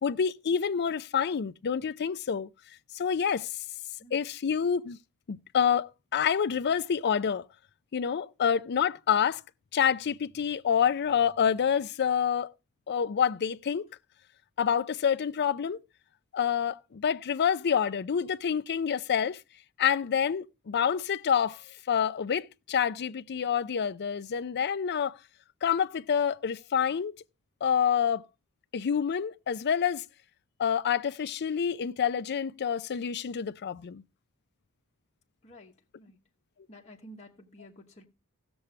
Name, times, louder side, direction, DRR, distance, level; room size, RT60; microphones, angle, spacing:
voice 1, 0.0-2.5 2.9-3.5 4.1-5.0 5.3-7.4 7.9-9.4 9.7-12.5 12.9-13.9 14.6-15.8 16.3-19.4 19.8-21.6 21.9-25.1 25.6-27.2 27.6-28.2 28.7-30.0 30.6-34.0, left 7 dB, 50° left, 0.4 m, -27 dB
voice 2, 35.4-36.2 36.7-38.0, equal, 30° left, 1.0 m, -51 dB
16.5 x 7.0 x 3.2 m
head